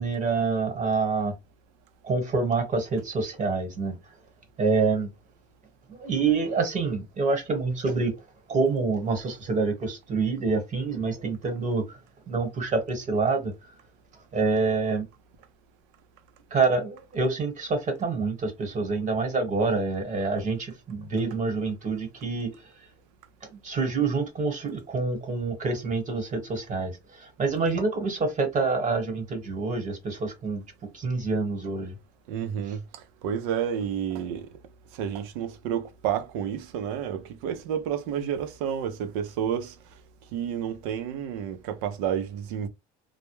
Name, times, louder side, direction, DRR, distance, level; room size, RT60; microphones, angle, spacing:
voice 1, 0.0-1.3 2.0-3.9 4.6-5.1 5.9-8.1 8.5-12.0 12.3-13.5 14.3-15.0 16.5-22.5 23.5-26.9 27.2-30.6 30.9-31.9, right 4 dB, 40° right, 1.1 m, -27 dB
voice 2, 32.3-32.8 33.2-34.5 34.9-39.7 40.3-42.7, right 9 dB, 90° right, 0.5 m, -30 dB
2.2 x 2.0 x 3.0 m
supercardioid pair, 80°, 18 cm